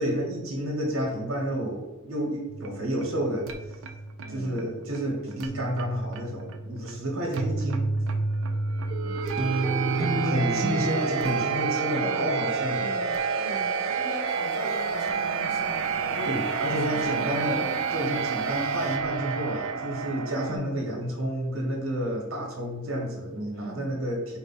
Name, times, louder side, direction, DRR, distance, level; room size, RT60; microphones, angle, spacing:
voice 1, 0.0-3.5 4.3-7.9 10.2-12.8 16.2-17.6 17.9-24.4, equal, 90° right, 0 dB, 1.2 m, -30 dB
sound 1, 2.5-20.6, right 5 dB, 70° right, 0.4 m, -30 dB
voice 2, 4.2-4.6 9.0-10.5 11.8-12.3 12.7-16.2 16.7-18.1 20.4-20.8 23.5-23.9, equal, 75° left, 0 dB, 1.2 m, -40 dB
Guitar, 9.4-12.6, right 2 dB, 30° right, 0.7 m, -30 dB
4.8 x 2.2 x 4.1 m, 1.1 s
head